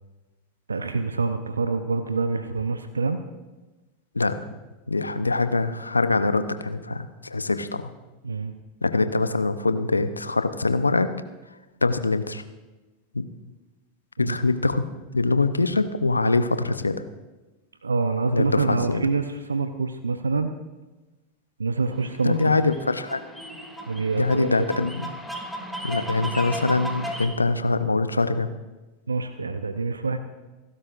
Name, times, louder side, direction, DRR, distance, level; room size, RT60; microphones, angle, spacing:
voice 1, 0.7-3.2 8.2-8.5 14.2-14.4 17.8-20.5 21.6-22.6 23.9-24.5 29.1-30.2, right 4 dB, 85° right, 9 dB, 0.7 m, -26 dB
voice 2, 4.9-7.9 8.8-11.1 11.8-12.4 13.1-13.3 14.2-14.8 15.1-17.0 18.3-19.0 22.2-23.2 24.1-25.1 25.8-28.5, left 3 dB, 90° left, 11 dB, 0.7 m, -23 dB
sound 1, 21.9-27.3, equal, ahead, 2.6 m, -35 dB
28.5 x 12.5 x 2.6 m, 1.1 s
figure-of-eight pair, 90°, 0 cm